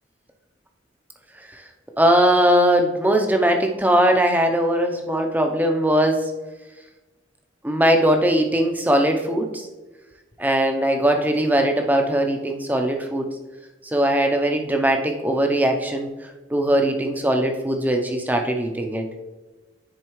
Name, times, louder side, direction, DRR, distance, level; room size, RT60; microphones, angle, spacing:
voice 1, 2.0-6.3 7.6-9.7 10.4-13.4 13.8-19.1, right 1 dB, 10° right, 4 dB, 0.6 m, -20 dB
9.9 x 3.9 x 3.1 m, 1.1 s
head